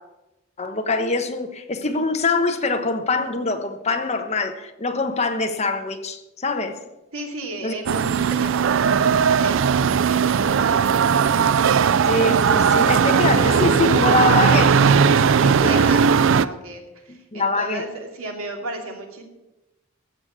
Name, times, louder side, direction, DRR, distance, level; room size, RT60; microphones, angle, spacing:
voice 1, 0.6-6.8 7.6-7.7 12.0-16.0 17.1-17.8, left 3 dB, 30° left, 1.1 m, -24 dB
voice 2, 7.1-11.3 15.5-19.2, right 2 dB, 85° right, 2.6 m, -34 dB
sound 1, 7.9-16.5, right 6 dB, 60° right, 0.4 m, -18 dB
15.0 x 6.6 x 7.3 m
head